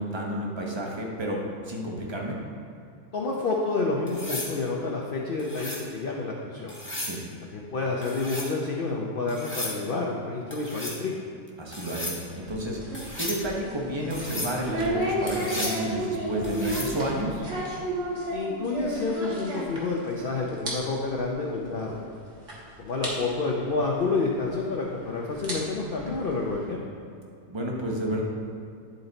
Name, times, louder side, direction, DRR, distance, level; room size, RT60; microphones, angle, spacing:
voice 1, 0.0-2.4 7.0-7.2 11.6-12.8 13.2-17.4 27.5-28.2, right 1 dB, 25° right, -1 dB, 0.6 m, -31 dB
voice 2, 3.1-6.7 7.4-11.1 18.3-22.2 22.8-26.8, left 3 dB, 70° left, -2 dB, 0.5 m, -29 dB
sound 1, 4.1-4.5 5.4-5.8 6.7-7.2 8.0-8.5 9.3-9.8 10.5-11.0 11.7-12.2 12.9-13.4 14.1-14.5 15.3-15.8 16.4-16.9 18.9-19.1, left 1 dB, 10° left, 1.2 m, -34 dB
sound 2, 12.3-20.2 20.4-20.7 21.0-21.2 21.9-22.0 22.5-22.6 23.0-23.1 24.5-24.6 25.3-26.7, right 1 dB, 50° right, 1.6 m, -32 dB
10.5 x 4.0 x 3.9 m, 2.5 s
omnidirectional pair, 1.8 m